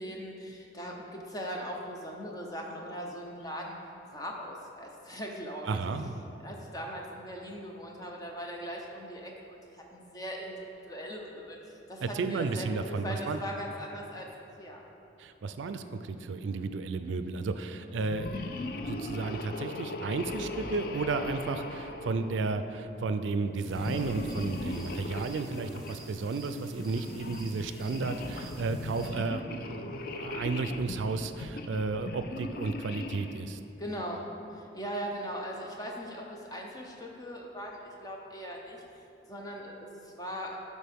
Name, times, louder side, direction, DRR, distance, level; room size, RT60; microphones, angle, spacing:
voice 1, 0.0-3.8 4.1-5.8 6.4-14.3 14.6-14.8 33.8-38.8 39.3-40.6, equal, 20° left, 0 dB, 0.7 m, -40 dB
voice 2, 5.7-6.3 12.0-13.4 15.2-18.5 18.8-33.6, right 3 dB, 85° right, 9 dB, 0.4 m, -33 dB
sound 1, 18.0-22.8 23.7-26.0 26.6-33.5, left 2 dB, 50° left, 0.4 m, -39 dB
sound 2, 23.6-29.1, right 2 dB, ahead, 1.0 m, -51 dB
12.0 x 4.3 x 3.5 m, 2.9 s
head